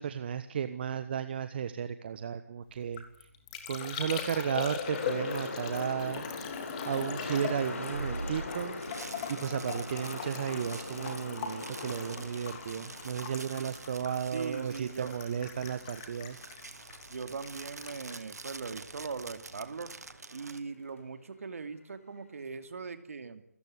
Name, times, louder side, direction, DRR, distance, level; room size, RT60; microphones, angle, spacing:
voice 1, 0.0-3.0 3.7-6.2 6.8-8.8 9.3-16.4, right 8 dB, 40° right, 11 dB, 1.3 m, -34 dB
Liquid, 2.7-19.4 19.6-20.1, left 7 dB, 25° left, 3.2 m, -41 dB
sound 1, 4.8-16.9 17.2-17.3, left 3 dB, 55° left, 6.4 m, -42 dB
sound 2, 6.9-20.6, right 3 dB, 80° right, 2.1 m, -46 dB
voice 2, 14.3-15.2 17.1-19.9 20.3-23.4, right 5 dB, 60° right, 9 dB, 2.7 m, -40 dB
27.5 x 14.5 x 9.9 m, 0.74 s
figure-of-eight pair, 155°, 9 cm